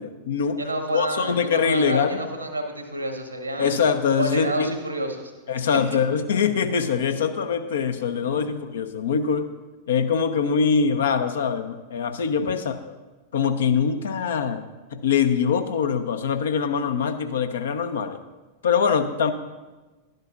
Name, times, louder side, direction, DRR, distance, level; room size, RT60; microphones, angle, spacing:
voice 1, 0.0-0.6 0.9-2.2 3.6-4.7 5.5-9.5 9.9-12.7 13.3-14.6 14.9-18.2 18.6-19.3, left 6 dB, 65° left, 8 dB, 0.7 m, -23 dB
voice 2, 0.6-3.8 4.2-5.3 5.7-5.8, right 1 dB, 85° right, 5 dB, 1.2 m, -29 dB
11.5 x 10.5 x 2.5 m, 1.2 s
figure-of-eight pair, 90°, 0 cm